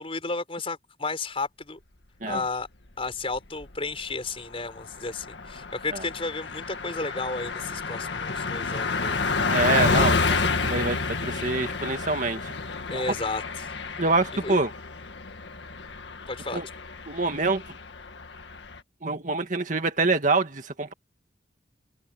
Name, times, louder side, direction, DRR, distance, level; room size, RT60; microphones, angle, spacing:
voice 1, 0.0-1.8 2.3-2.7 3.0-9.2 12.9-13.7 14.4-14.6 16.3-16.6, left 3 dB, 30° left, 4.8 m, -32 dB
Car passing by, 3.1-3.8 4.1-4.2 4.5-18.8, left 4 dB, 80° left, 1.8 m, -29 dB
voice 2, 9.5-12.5 12.9-13.1 14.0-14.7 16.5-16.7 17.1-17.6 19.0-20.9, right 3 dB, 45° right, 1.9 m, -26 dB
open air
head